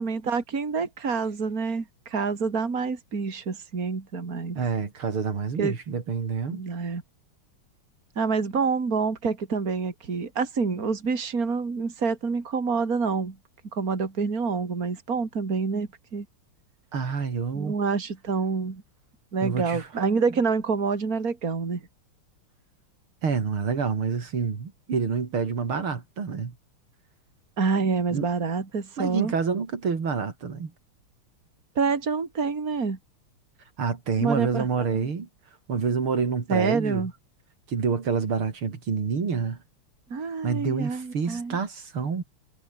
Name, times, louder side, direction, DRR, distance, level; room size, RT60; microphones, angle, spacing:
voice 1, 0.0-4.6 5.6-5.7 6.5-7.0 8.2-13.4 13.7-16.2 17.5-18.8 19.3-21.8 27.6-29.3 31.7-33.0 34.2-34.7 36.5-37.1 40.1-41.6, right 5 dB, 40° right, 3.4 m, -27 dB
voice 2, 4.6-6.6 16.9-17.7 19.4-19.9 23.2-26.5 28.1-28.3 29.0-30.7 33.8-35.3 35.7-37.1 37.7-39.6 40.4-42.2, right 5 dB, 75° right, 3.8 m, -27 dB
omnidirectional pair, 2.4 m